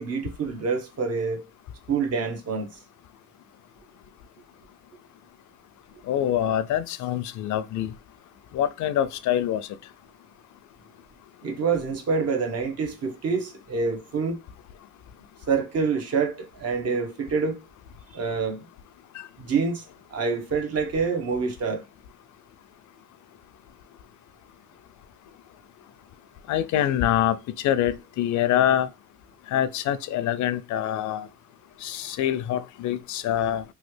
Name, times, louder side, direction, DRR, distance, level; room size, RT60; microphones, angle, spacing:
voice 1, 0.0-1.4 1.9-2.8 11.4-14.4 15.5-17.6 18.1-18.7 19.4-19.9 20.1-21.8, right 5 dB, 55° right, 0.9 m, -26 dB
voice 2, 6.1-7.9 8.5-9.7 19.2-19.3 26.5-28.9 29.5-31.3 31.8-33.6, left 11 dB, 75° left, 0.4 m, -25 dB
3.1 x 2.3 x 3.1 m
cardioid pair, 90°, 30 cm